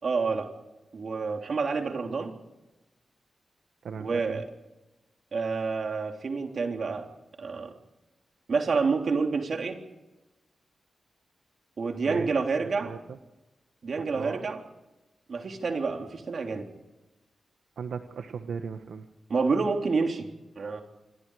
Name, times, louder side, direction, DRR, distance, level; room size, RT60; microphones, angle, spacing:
voice 1, 0.0-0.5 0.9-2.3 4.0-4.4 5.3-7.1 7.4-7.7 8.5-9.8 11.8-12.9 13.8-14.6 15.3-16.7 19.3-20.3 20.6-20.8, right 4 dB, 55° right, 3 dB, 3.6 m, -28 dB
voice 2, 3.8-4.4 12.1-13.2 14.1-14.4 17.8-19.1, right 6 dB, 85° right, 6 dB, 1.5 m, -38 dB
27.0 x 23.5 x 5.0 m, 1.0 s
wide cardioid pair, 105°, 0 cm